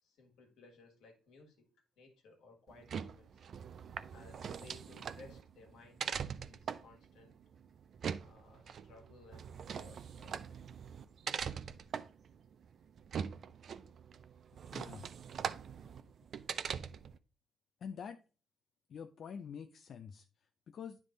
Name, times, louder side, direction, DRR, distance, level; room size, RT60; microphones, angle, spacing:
voice 1, 0.0-1.7 2.0-3.4 4.1-7.4 8.2-10.6, left 3 dB, 80° left, 1.7 m, -59 dB
sound 1, 2.7-17.2, right 7 dB, 60° right, 0.4 m, -42 dB
voice 2, 14.7-15.1 17.8-18.2 18.9-21.0, left 7 dB, 60° left, 0.4 m, -47 dB
9.8 x 3.6 x 3.8 m
cardioid pair, 90°, 0 cm